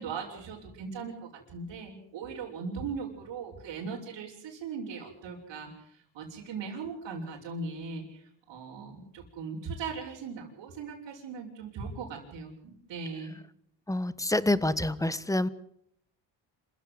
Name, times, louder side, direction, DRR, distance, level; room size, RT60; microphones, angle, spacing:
voice 1, 0.0-13.4, right 5 dB, 70° right, -5 dB, 5.9 m, -39 dB
voice 2, 13.9-15.5, left 1 dB, 5° left, 16 dB, 1.3 m, -27 dB
27.0 x 15.5 x 7.9 m, 0.73 s
cardioid pair, 80°, 45 cm